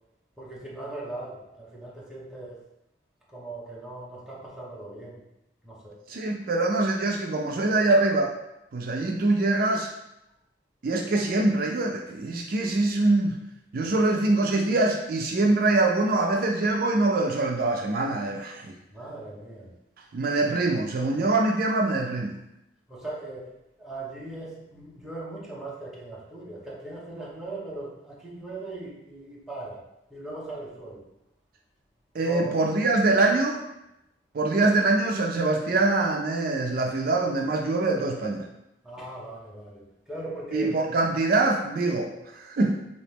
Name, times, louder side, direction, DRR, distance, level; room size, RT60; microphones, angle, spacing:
voice 1, 0.4-2.6 3.3-5.2 5.6-6.0 13.8-13.9 18.9-19.7 22.9-29.8 30.1-31.0 32.2-32.6 38.0-38.4 38.8-40.8, right 2 dB, 5° right, -6 dB, 0.9 m, -39 dB
voice 2, 6.1-8.3 8.7-9.9 10.8-13.4 13.7-18.7 20.1-22.4 32.1-33.6 34.3-38.4 40.5-42.8, right 2 dB, 55° right, 1 dB, 0.4 m, -24 dB
4.0 x 2.8 x 3.4 m, 0.85 s
head